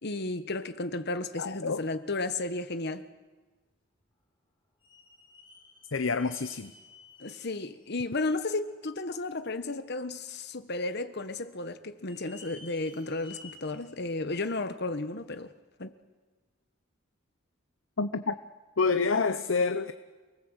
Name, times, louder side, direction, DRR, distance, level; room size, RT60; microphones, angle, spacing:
voice 1, 0.0-3.1 7.2-15.5 15.8-15.9, left 2 dB, 55° left, 1.3 m, -33 dB
voice 2, 1.4-1.8 5.9-6.7 18.0-18.3 18.8-19.9, left 4 dB, 70° left, 0.9 m, -28 dB
sound 1, 4.0-4.1 4.8-8.2 8.7-8.8 9.4-9.5 10.4-10.8 11.1-11.2 11.9-13.9 14.4-14.5 15.4-15.5, left 3 dB, 25° left, 6.2 m, -54 dB
28.5 x 20.0 x 8.1 m
head